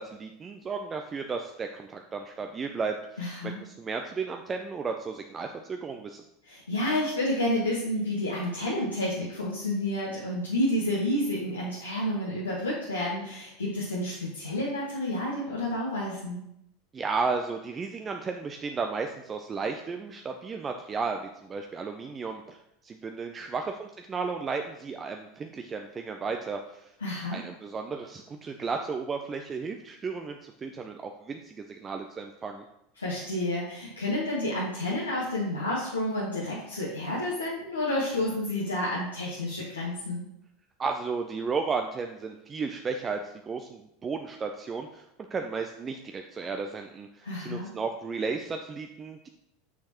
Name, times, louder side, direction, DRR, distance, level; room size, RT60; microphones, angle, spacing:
voice 1, 0.0-3.0 3.4-6.2 16.9-22.6 22.8-26.9 27.3-32.6 40.8-45.0 45.3-49.3, right 4 dB, 25° right, 4 dB, 0.5 m, -34 dB
voice 2, 3.2-3.6 6.4-16.4 27.0-27.4 33.0-40.2 47.2-47.7, left 1 dB, 85° left, -7 dB, 1.3 m, -30 dB
6.4 x 5.9 x 3.0 m, 0.80 s
figure-of-eight pair, 80°, 0 cm